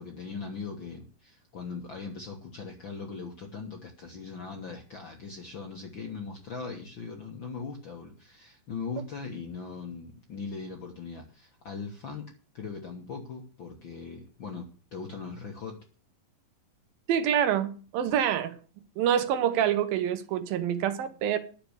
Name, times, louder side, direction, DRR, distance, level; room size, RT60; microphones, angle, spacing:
voice 1, 0.0-15.8, left 4 dB, 55° left, 1.3 m, -40 dB
voice 2, 17.1-18.5 19.0-21.4, right 9 dB, 80° right, 2.8 m, -26 dB
10.5 x 6.9 x 7.9 m
omnidirectional pair, 4.1 m